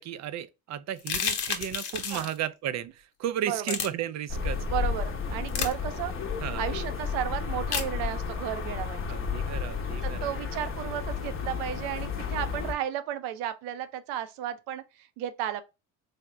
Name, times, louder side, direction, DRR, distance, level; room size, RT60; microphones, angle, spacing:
voice 1, 0.0-4.6 6.4-6.6 9.1-10.3, right 10 dB, 45° right, 0.4 m, -34 dB
sound 1, 1.0-2.4 3.6-3.9 5.5-5.7 7.7-7.9, left 7 dB, 80° left, 0.9 m, -30 dB
voice 2, 1.9-2.3 3.5-3.6 4.7-6.1 6.5-9.2 10.0-15.6, right 11 dB, 90° right, 0.6 m, -33 dB
sound 2, 4.3-12.7, left 5 dB, 30° left, 0.8 m, -32 dB
3.4 x 2.1 x 3.6 m
supercardioid pair, 85°, 40 cm